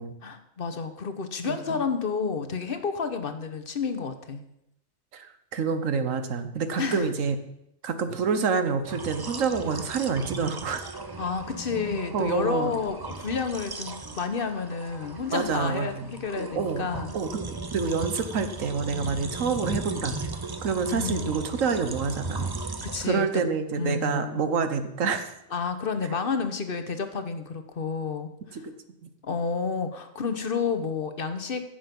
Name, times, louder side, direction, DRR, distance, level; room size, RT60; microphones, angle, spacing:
voice 1, 0.2-4.4 6.8-7.1 11.2-17.1 20.9-21.4 22.8-23.5 23.8-24.4 25.5-28.6 29.2-31.6, left 5 dB, 45° left, 9 dB, 1.1 m, -30 dB
voice 2, 1.4-1.8 5.1-7.3 7.8-10.9 12.1-12.7 15.3-16.1 16.4-20.3 20.6-22.5 23.0-25.3 28.5-28.6, right 5 dB, 75° right, 9 dB, 1.4 m, -28 dB
sound 1, 8.9-23.1, right 3 dB, 25° right, 0.5 m, -37 dB
15.0 x 6.8 x 5.4 m, 0.83 s
omnidirectional pair, 1.4 m